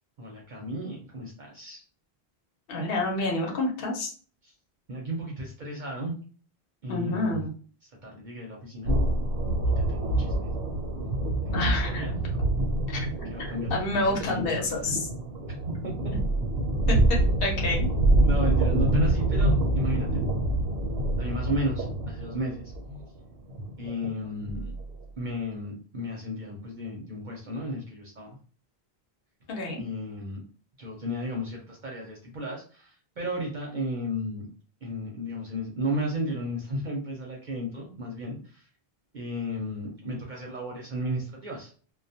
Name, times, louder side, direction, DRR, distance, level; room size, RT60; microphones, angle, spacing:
voice 1, 0.2-1.8 4.4-4.5 4.9-6.2 6.8-7.4 7.8-8.9 9.8-10.5 11.4-12.2 13.3-14.9 15.8-16.2 18.2-20.2 21.2-22.7 23.8-24.7 25.2-28.4 29.8-30.4 30.8-34.5 34.8-38.7 39.1-41.7, equal, 55° right, -1 dB, 0.7 m, -34 dB
voice 2, 2.7-4.1 6.9-7.5 11.5-12.1 12.9-13.0 13.4-15.1 16.9-17.0 17.4-17.9 29.5-29.8, left 2 dB, 65° left, 0 dB, 0.9 m, -28 dB
sound 1, 8.8-25.0, right 1 dB, 80° right, 0.8 m, -26 dB
2.2 x 2.1 x 2.6 m, 0.40 s
omnidirectional pair, 1.0 m